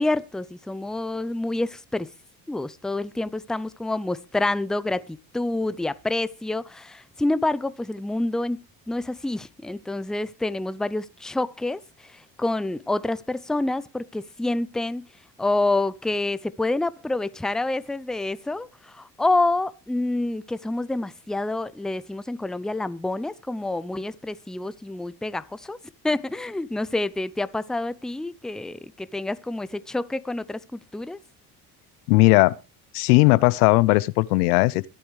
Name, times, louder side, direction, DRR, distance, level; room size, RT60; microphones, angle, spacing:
voice 1, 0.0-2.1 2.5-8.6 8.9-15.1 15.4-25.8 26.0-31.2, left 2 dB, ahead, 0.6 m, -27 dB
voice 2, 32.1-32.6 32.9-34.9, left 22 dB, 85° left, 0.7 m, -18 dB
22.5 x 8.7 x 3.2 m
supercardioid pair, 80°, 44 cm